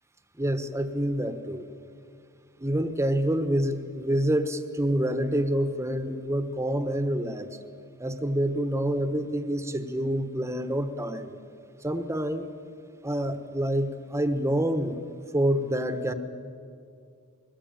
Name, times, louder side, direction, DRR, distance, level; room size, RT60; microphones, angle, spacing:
voice 1, 0.4-1.6 2.6-7.5 8.0-11.3 11.8-12.5 13.0-15.0 15.3-16.1, right 1 dB, 15° right, 9 dB, 1.2 m, -27 dB
22.0 x 19.0 x 9.1 m, 2.3 s
head